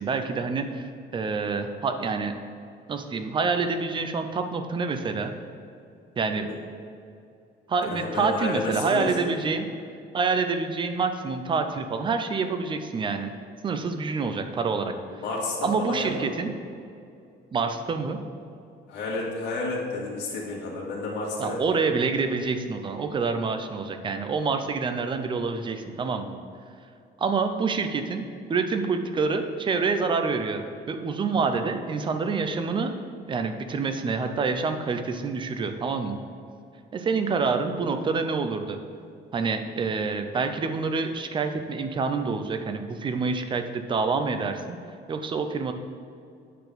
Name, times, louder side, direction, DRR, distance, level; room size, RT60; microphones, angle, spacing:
voice 1, 0.0-2.3 2.9-5.3 6.2-6.5 7.7-9.7 10.1-13.3 13.6-15.2 15.6-16.5 17.5-18.2 21.4-26.3 27.2-28.2 28.5-32.9 33.3-36.2 36.9-38.8 39.3-44.8 45.1-45.7, right 4 dB, 25° right, 7 dB, 0.6 m, -27 dB
voice 2, 7.9-9.3 14.8-16.3 18.9-21.8, left 2 dB, 80° left, -3 dB, 2.0 m, -31 dB
9.3 x 4.0 x 6.8 m, 2.5 s
cardioid pair, 170°, 18 cm